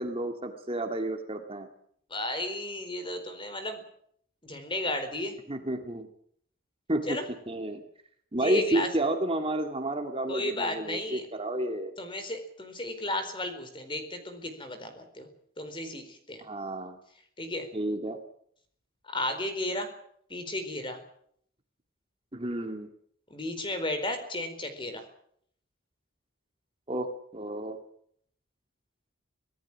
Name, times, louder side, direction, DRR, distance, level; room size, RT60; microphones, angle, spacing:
voice 1, 0.0-1.7 5.5-6.1 6.9-7.2 7.5-7.8 8.3-11.9 16.4-17.0 17.7-18.2 22.3-22.9 26.9-27.8, right 1 dB, 25° right, 5 dB, 2.1 m, -31 dB
voice 2, 2.1-3.8 4.4-5.4 7.1-7.2 8.4-8.9 10.3-11.2 12.0-15.3 15.6-16.4 17.4-17.7 19.1-19.9 20.3-21.0 23.3-25.0, left 1 dB, 25° left, 8 dB, 4.4 m, -33 dB
25.5 x 17.5 x 7.5 m, 0.66 s
head